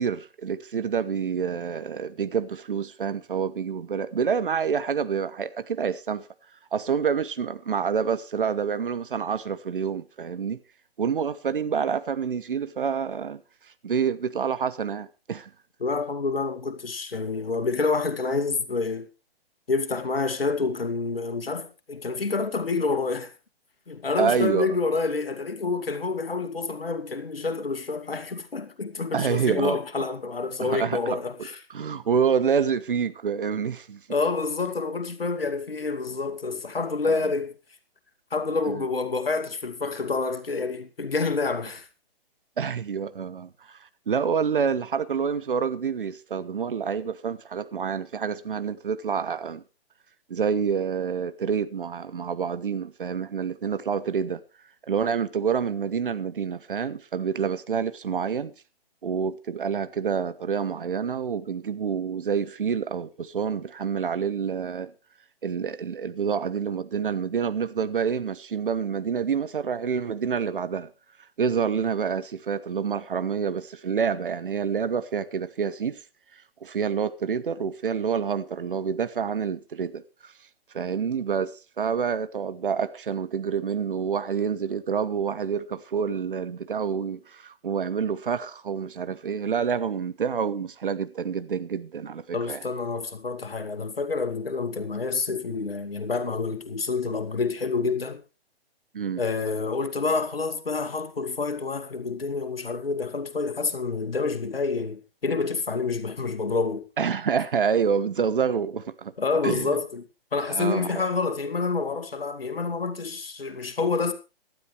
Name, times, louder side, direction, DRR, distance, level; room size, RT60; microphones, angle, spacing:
voice 1, 0.0-6.3 6.7-10.6 11.0-13.4 13.8-15.5 24.2-24.8 29.1-30.0 30.6-31.2 31.7-34.0 37.1-37.2 38.7-38.8 42.6-43.8 44.1-49.6 50.3-54.4 54.9-58.5 59.0-64.9 65.4-70.9 71.4-76.0 76.6-80.3 80.7-92.6 98.9-99.2 107.0-109.1 109.4-109.7 110.5-111.0, right 6 dB, 60° right, 1.1 m, -27 dB
voice 2, 15.8-19.1 19.7-23.3 23.9-31.6 34.1-37.5 38.3-41.9 92.3-98.2 99.2-106.9 109.2-110.1 110.3-114.1, left 4 dB, 70° left, 2.4 m, -28 dB
18.0 x 12.0 x 3.3 m
figure-of-eight pair, 130°, 30 cm